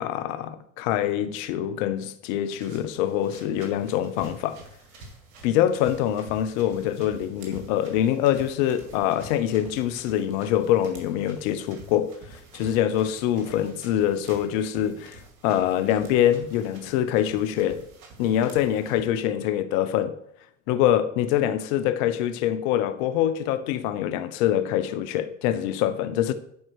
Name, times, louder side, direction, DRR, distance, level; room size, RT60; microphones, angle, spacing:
voice 1, 0.0-4.6 5.4-17.9 18.2-20.2 20.7-26.3, left 11 dB, 75° left, 1.0 m, -24 dB
sound 1, 2.5-19.0, right 2 dB, 85° right, 2.3 m, -48 dB
10.5 x 4.5 x 6.3 m
hypercardioid pair, 80°, 40 cm